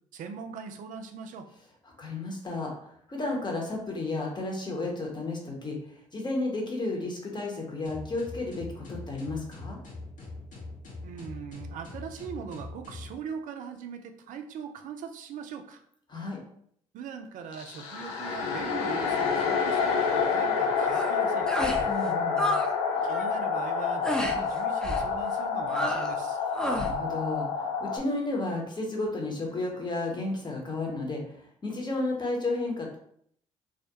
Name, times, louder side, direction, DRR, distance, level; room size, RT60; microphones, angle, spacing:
voice 1, 0.1-1.5 11.0-15.8 16.9-21.9 23.0-26.4, right 6 dB, 60° right, 6 dB, 0.4 m, -41 dB
voice 2, 2.0-5.8 6.1-9.8 16.1-16.4 21.9-22.6 26.7-33.0, left 2 dB, 30° left, 0 dB, 0.9 m, -32 dB
sound 1, 7.8-13.1, left 3 dB, 60° left, 0.9 m, -42 dB
sound 2, 17.5-28.0, left 5 dB, 80° left, 0.4 m, -28 dB
sound 3, 20.8-21.1 21.5-21.9 22.1-22.7 23.0-23.3 24.0-24.4 24.8-25.1 25.7-26.2 26.5-27.0, equal, 5° left, 0.4 m, -31 dB
2.3 x 2.1 x 2.8 m, 0.67 s
hypercardioid pair, 50°, 15 cm